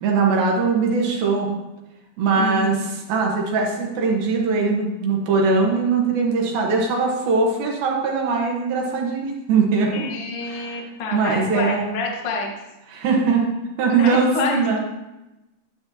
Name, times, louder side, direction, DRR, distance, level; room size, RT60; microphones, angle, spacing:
voice 1, 0.0-1.5 2.2-2.7 3.1-10.1 10.4-10.9 11.1-11.9 12.9-13.5 13.8-14.8, right 4 dB, 70° right, 0 dB, 2.9 m, -21 dB
voice 2, 2.4-2.8 9.9-12.5 13.9-14.7, left 3 dB, 60° left, -1 dB, 1.5 m, -27 dB
11.0 x 9.6 x 2.8 m, 0.99 s
omnidirectional pair, 4.6 m